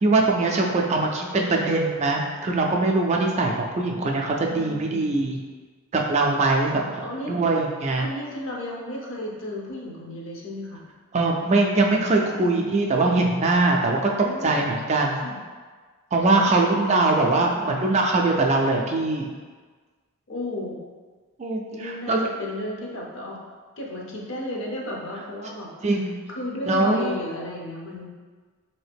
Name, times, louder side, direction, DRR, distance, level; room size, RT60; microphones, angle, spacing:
voice 1, 0.0-5.4 5.9-8.1 11.1-15.2 16.1-19.3 21.4-22.3 25.8-26.1 26.7-27.1, right 2 dB, 30° right, 0 dB, 0.3 m, -22 dB
voice 2, 0.9-1.7 4.5-5.1 6.6-7.3 8.0-10.9 12.3-13.0 14.2-14.7 15.1-15.4 16.4-16.7 17.2-17.7 20.3-20.8 21.7-23.4 23.8-25.9 26.3-28.1, left 1 dB, 60° left, -2 dB, 0.7 m, -34 dB
3.8 x 2.7 x 3.4 m, 1.5 s
head